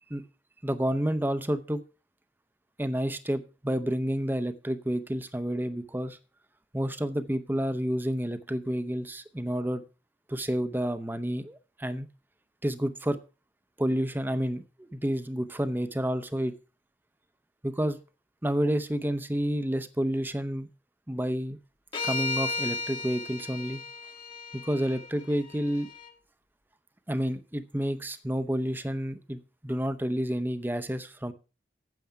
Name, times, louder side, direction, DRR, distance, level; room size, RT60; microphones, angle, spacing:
voice 1, 0.6-1.8 2.8-6.2 6.7-9.8 10.3-12.1 12.6-13.2 13.8-16.5 17.6-18.0 18.4-20.7 21.1-21.6 22.0-23.8 24.5-25.9 27.1-31.3, equal, 10° right, 0.7 m, -30 dB
sound 1, 21.9-26.1, left 3 dB, 30° left, 1.4 m, -35 dB
9.4 x 7.7 x 5.7 m
head